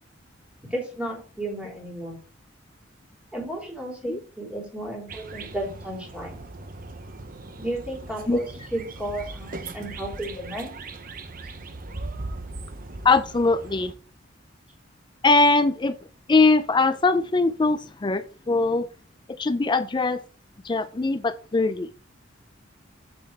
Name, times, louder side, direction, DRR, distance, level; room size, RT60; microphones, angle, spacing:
voice 1, 0.6-2.2 3.3-6.4 7.6-10.7, right 1 dB, 5° right, -2 dB, 3.8 m, -33 dB
sound 1, 5.1-13.9, right 2 dB, 45° right, 0.9 m, -39 dB
voice 2, 13.0-13.9 15.2-16.0 16.3-18.9 19.4-20.2 20.6-21.9, left 3 dB, 25° left, 12 dB, 0.4 m, -21 dB
7.9 x 7.1 x 4.2 m, 0.37 s
head